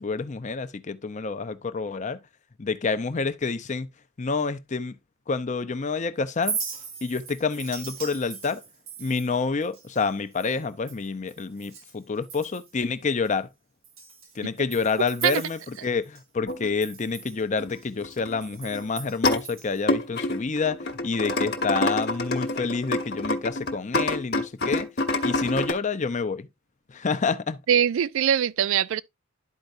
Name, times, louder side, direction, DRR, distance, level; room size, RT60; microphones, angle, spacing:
voice 1, 0.0-2.2 2.6-3.9 4.2-4.9 5.3-6.6 7.0-8.6 9.0-13.5 14.4-24.9 25.2-26.5 26.9-27.6, left 4 dB, 35° left, 0.5 m, -28 dB
Chink clink, 6.3-11.9 12.2-12.8 13.2-13.3 13.8-16.2 16.5-19.9, right 6 dB, 90° right, 1.9 m, -39 dB
sound 1, 16.5-16.7 17.6-17.7 18.0-18.4 18.7-19.4 19.9-25.7, left 2 dB, 55° left, 0.9 m, -27 dB
voice 2, 27.7-29.0, right 9 dB, 75° right, 0.3 m, -22 dB
11.5 x 4.5 x 2.5 m
head